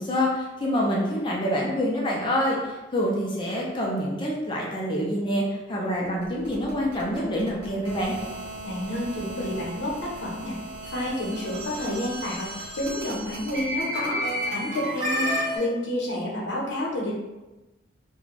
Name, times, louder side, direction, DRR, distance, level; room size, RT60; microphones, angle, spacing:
voice 1, 0.0-8.2, equal, 25° left, -3 dB, 0.4 m, -26 dB
sound 1, 6.0-15.6, equal, 55° right, 0.6 m, -33 dB
voice 2, 8.6-10.6 10.8-14.2 14.5-17.2, left 1 dB, 70° left, -3 dB, 0.8 m, -30 dB
2.4 x 2.2 x 3.2 m, 1.1 s
head